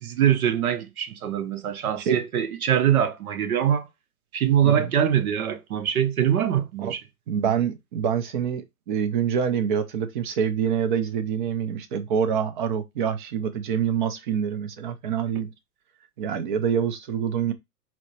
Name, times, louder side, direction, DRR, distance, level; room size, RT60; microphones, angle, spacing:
voice 1, 0.0-3.8 4.3-7.0, right 9 dB, 65° right, 0.8 m, -23 dB
voice 2, 7.3-15.5 16.2-17.5, right 8 dB, 35° right, 0.4 m, -26 dB
4.2 x 2.0 x 2.7 m
hypercardioid pair, 115°, 46 cm